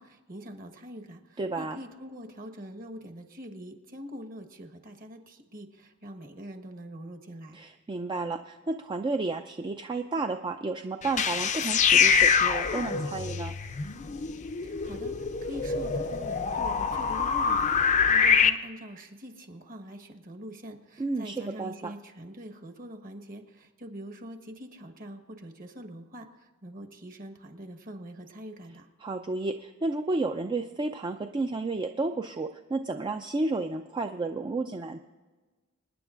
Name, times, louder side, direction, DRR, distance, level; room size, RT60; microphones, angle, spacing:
voice 1, 0.0-7.6 14.6-28.9, equal, 40° right, 5 dB, 1.2 m, -44 dB
voice 2, 1.4-1.8 7.5-13.5 21.0-21.9 29.0-35.0, right 3 dB, 20° right, 6 dB, 0.4 m, -32 dB
sound 1, 11.0-18.5, left 6 dB, 35° left, 0.5 m, -25 dB
27.0 x 9.9 x 2.5 m, 1.3 s
head